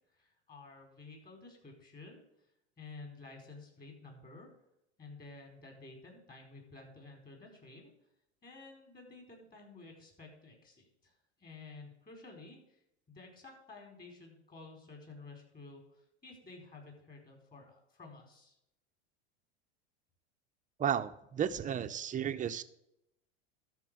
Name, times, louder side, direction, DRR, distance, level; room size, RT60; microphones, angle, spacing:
voice 1, 0.1-2.2 2.8-4.5 5.0-7.9 8.4-12.8 13.1-18.6, left 3 dB, 25° left, 2 dB, 4.8 m, -52 dB
voice 2, 20.8-22.6, right 9 dB, 25° right, 9 dB, 0.8 m, -33 dB
13.0 x 4.6 x 7.7 m, 0.81 s
hypercardioid pair, 100°, 33 cm